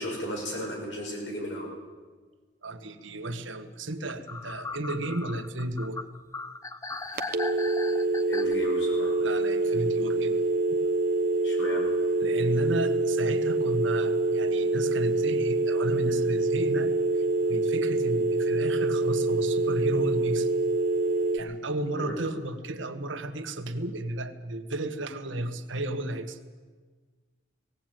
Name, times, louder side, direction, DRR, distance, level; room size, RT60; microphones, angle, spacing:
voice 1, 0.0-1.7 8.3-9.2 11.4-11.8 22.0-22.2, equal, 75° left, -1 dB, 6.7 m, -34 dB
voice 2, 2.6-6.0 9.2-10.8 12.2-16.9 17.2-20.5 21.3-26.4, right 1 dB, 85° right, 8 dB, 1.6 m, -33 dB
sound 1, 4.1-8.5, left 3 dB, 15° left, 0.7 m, -38 dB
sound 2, 7.2-21.4, right 2 dB, 45° right, 1.1 m, -26 dB
18.5 x 17.5 x 9.2 m, 1.5 s
head